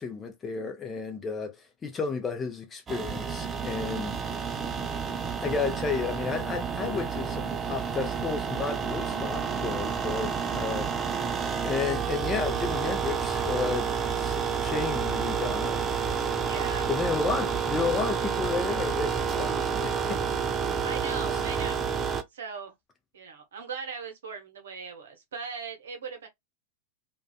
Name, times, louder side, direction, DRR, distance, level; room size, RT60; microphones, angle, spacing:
voice 1, 0.0-1.6 1.8-4.5 5.4-11.2 11.6-15.9 16.9-20.2 21.3-21.4, left 5 dB, 20° left, 0.6 m, -32 dB
sound 1, 2.9-22.2, right 6 dB, 20° right, 0.4 m, -30 dB
voice 2, 16.4-16.9 20.8-22.0 22.3-22.7 23.1-26.3, right 5 dB, 65° right, 0.7 m, -39 dB
2.5 x 2.3 x 2.2 m
figure-of-eight pair, 90°, 0 cm